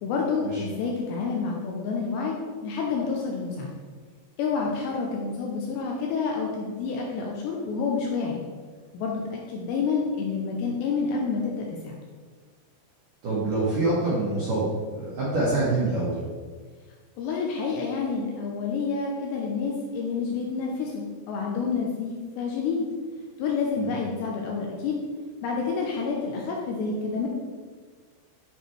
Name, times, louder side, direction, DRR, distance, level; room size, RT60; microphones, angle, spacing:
voice 1, 0.0-3.7 4.4-8.4 8.9-12.0 17.2-22.9 23.4-25.0 25.4-27.3, left 5 dB, 85° left, -1 dB, 2.6 m, -28 dB
voice 2, 13.2-14.7 14.9-16.2 23.8-23.9, right 2 dB, 75° right, -8 dB, 1.9 m, -25 dB
10.0 x 4.4 x 3.2 m, 1.5 s
omnidirectional pair, 5.6 m